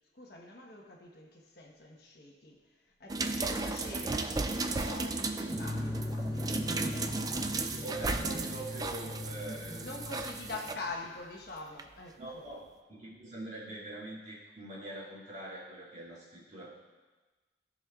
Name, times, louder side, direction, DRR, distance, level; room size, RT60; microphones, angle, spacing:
voice 1, 0.1-7.2 9.5-12.5, left 3 dB, 60° left, -1 dB, 1.2 m, -45 dB
sound 1, 3.1-10.7 11.8-11.9, right 3 dB, 20° right, 0.3 m, -35 dB
sound 2, 5.5-10.9, left 1 dB, 20° left, 0.8 m, -39 dB
voice 2, 7.7-9.8 10.5-10.6 12.2-12.6 12.9-16.7, right 1 dB, 40° right, -8 dB, 2.4 m, -43 dB
15.5 x 5.3 x 2.4 m, 1.3 s
head